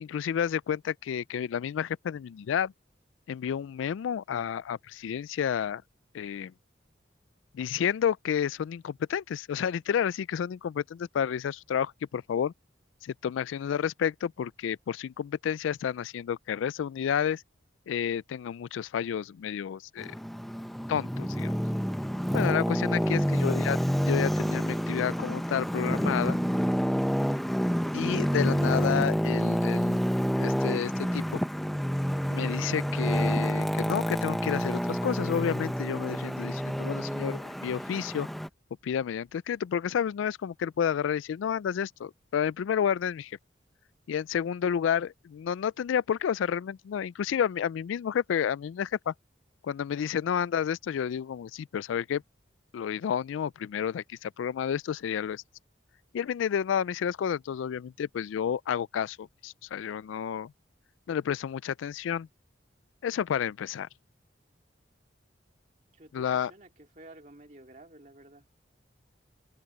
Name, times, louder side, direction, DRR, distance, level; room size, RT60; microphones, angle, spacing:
voice 1, 0.0-2.7 3.3-5.8 6.1-6.5 7.5-12.5 13.0-17.4 17.9-20.1 20.9-21.5 22.3-23.8 24.1-26.4 27.9-30.0 30.4-31.4 32.3-38.3 38.8-43.4 44.1-49.1 49.6-52.2 52.7-55.4 56.1-60.5 61.1-62.3 63.0-63.9 66.1-66.5, left 8 dB, 85° left, 0.3 m, -30 dB
Traffic noise roadway noise, 20.0-38.5, equal, ahead, 0.6 m, -28 dB
voice 2, 65.9-68.5, right 2 dB, 40° right, 2.3 m, -52 dB
open air
head